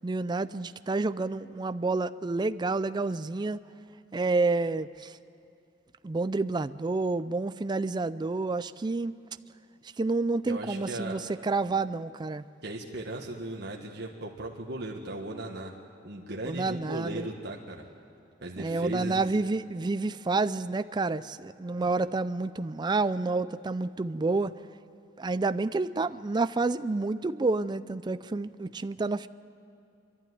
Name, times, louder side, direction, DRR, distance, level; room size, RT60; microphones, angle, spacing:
voice 1, 0.0-3.6 4.1-5.2 6.0-9.1 10.0-12.4 16.4-17.3 18.6-24.5 25.2-29.3, right 3 dB, 25° right, 13 dB, 0.4 m, -29 dB
voice 2, 10.5-11.2 12.6-15.7 16.0-17.8 18.4-19.2 21.8-21.9, right 1 dB, 60° right, -1 dB, 1.6 m, -37 dB
27.0 x 12.0 x 9.4 m, 2.7 s
head